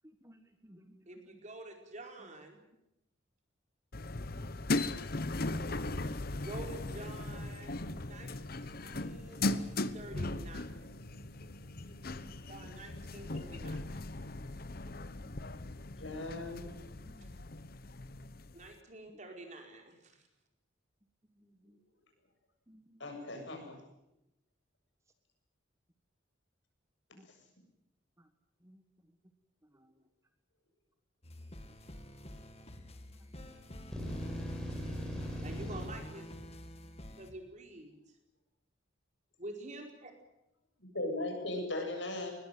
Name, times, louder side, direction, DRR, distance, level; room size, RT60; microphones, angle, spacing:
voice 1, 0.2-1.0 4.3-4.9 15.3-15.4 17.1-17.3 21.7-21.8 22.7-23.0 27.2-27.3 28.7-28.8, equal, 15° right, 7 dB, 1.5 m, -58 dB
voice 2, 1.1-2.6 6.4-8.3 8.6-11.1 12.5-14.1 18.5-20.0 35.4-36.5 37.2-37.9 39.4-40.1, right 1 dB, 40° right, 3 dB, 4.7 m, -48 dB
sound 1, 3.9-18.7, left 2 dB, 50° left, 1.0 m, -38 dB
voice 3, 16.0-16.6 23.0-23.8 40.8-42.3, left 2 dB, 70° left, 3 dB, 7.7 m, -37 dB
sound 2, 31.2-37.3, left 1 dB, 35° left, 2.1 m, -48 dB
sound 3, 33.9-35.9, equal, 5° left, 5.3 m, -39 dB
21.5 x 20.5 x 9.3 m, 0.86 s
head